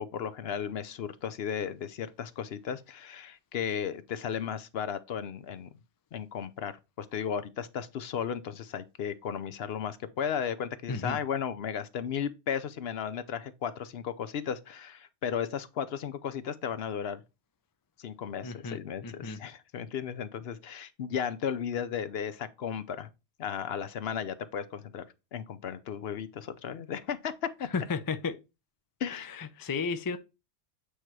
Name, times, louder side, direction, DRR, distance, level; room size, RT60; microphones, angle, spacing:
voice 1, 0.0-5.7 6.1-17.2 18.0-23.1 23.4-25.0 25.3-27.7 29.0-29.3, left 8 dB, 65° left, 0.8 m, -35 dB
voice 2, 10.9-11.2 18.4-19.4 27.7-28.4 29.1-30.2, left 5 dB, 30° left, 0.4 m, -33 dB
8.3 x 3.0 x 4.6 m
omnidirectional pair, 1.2 m